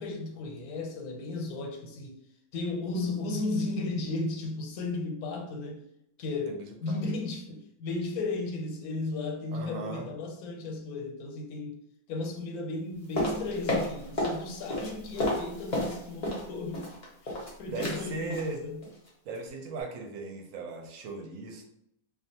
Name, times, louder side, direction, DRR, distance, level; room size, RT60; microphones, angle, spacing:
voice 1, 0.0-2.2 2.5-5.8 6.2-11.8 12.1-16.9 17.2-18.8, left 3 dB, 85° left, 1.1 m, -35 dB
voice 2, 6.5-7.0 9.5-10.1 17.7-18.6 19.2-21.6, right 3 dB, 70° right, 0.9 m, -38 dB
sound 1, 13.2-14.4 14.7-16.5 16.7-17.5 17.8-18.0 18.3-18.5 18.8-19.1 19.3-19.4, left 1 dB, 45° left, 0.6 m, -31 dB
2.4 x 2.3 x 2.7 m
omnidirectional pair, 1.5 m